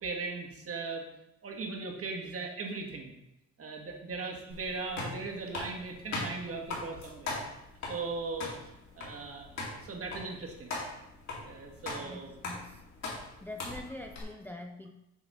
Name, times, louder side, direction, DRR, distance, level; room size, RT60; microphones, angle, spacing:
voice 1, 0.0-1.0 1.4-3.1 3.6-7.4 7.9-8.5 8.9-10.7 11.4-12.3, right 3 dB, 50° right, 1 dB, 1.5 m, -38 dB
sound 1, 4.5-14.2, left 2 dB, 65° left, 2.4 m, -40 dB
voice 2, 11.9-12.8 13.4-14.9, left 2 dB, 5° left, 4 dB, 0.5 m, -44 dB
8.0 x 3.2 x 5.4 m, 0.88 s
cardioid pair, 90°, 30 cm